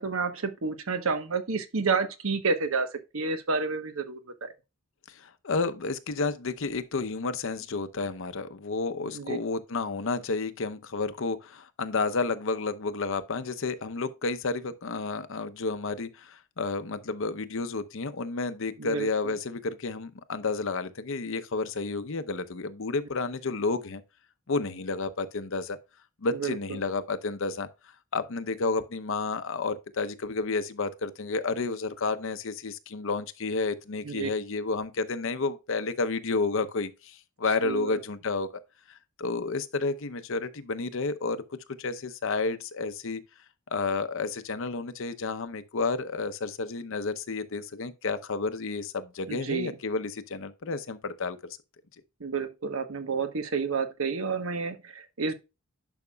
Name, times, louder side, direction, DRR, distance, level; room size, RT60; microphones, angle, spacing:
voice 1, 0.0-4.5 9.1-9.4 18.8-19.3 26.3-26.8 34.0-34.3 37.6-38.0 49.3-49.8 52.2-55.3, right 4 dB, 80° right, 1.1 m, -30 dB
voice 2, 5.2-24.0 24.5-25.8 26.2-27.7 28.1-38.5 38.9-43.2 43.7-51.6, left 3 dB, 65° left, 0.7 m, -31 dB
10.5 x 5.8 x 2.3 m
head